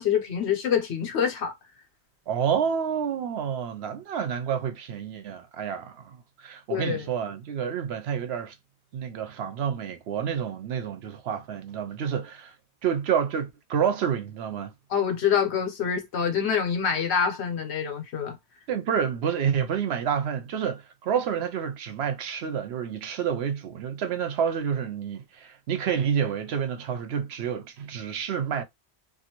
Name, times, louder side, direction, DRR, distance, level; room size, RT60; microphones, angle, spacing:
voice 1, 0.0-1.5 6.7-7.1 14.9-18.4, left 7 dB, 80° left, 1.1 m, -26 dB
voice 2, 2.3-8.5 8.9-12.5 12.8-14.7 18.7-28.6, right 8 dB, 70° right, 0.8 m, -29 dB
2.6 x 2.5 x 2.8 m
omnidirectional pair, 1.1 m